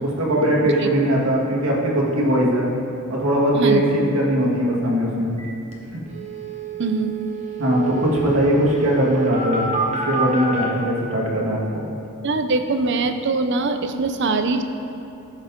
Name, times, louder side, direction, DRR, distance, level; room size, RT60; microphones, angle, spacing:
voice 1, 0.0-2.7 3.1-5.3 7.6-9.6 10.0-11.8, equal, 65° right, -4 dB, 2.0 m, -20 dB
sound 1, 5.4-5.5 5.7-5.8 6.1-10.6, right 5 dB, 30° right, 1.2 m, -28 dB
voice 2, 6.8-7.2 12.2-14.6, right 3 dB, 50° right, 8 dB, 0.6 m, -22 dB
14.0 x 6.6 x 3.8 m, 2.8 s
head